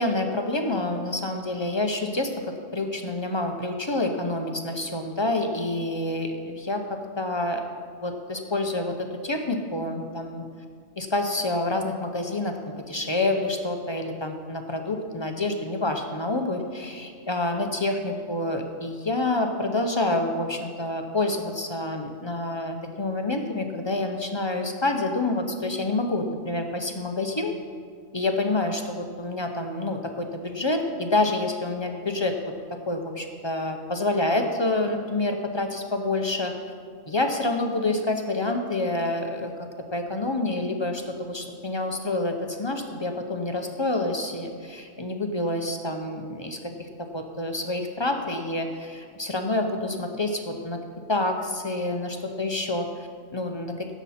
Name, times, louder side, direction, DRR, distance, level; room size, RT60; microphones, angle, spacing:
voice 1, 0.0-2.3 2.7-6.8 7.2-7.7 8.0-10.5 11.0-12.6 12.9-27.5 28.1-32.4 32.9-36.5 37.1-39.5 39.9-50.8 51.1-52.9 53.3-53.9, left 2 dB, 30° left, 4 dB, 0.6 m, -27 dB
16.5 x 7.1 x 4.3 m, 2.1 s
omnidirectional pair, 1.3 m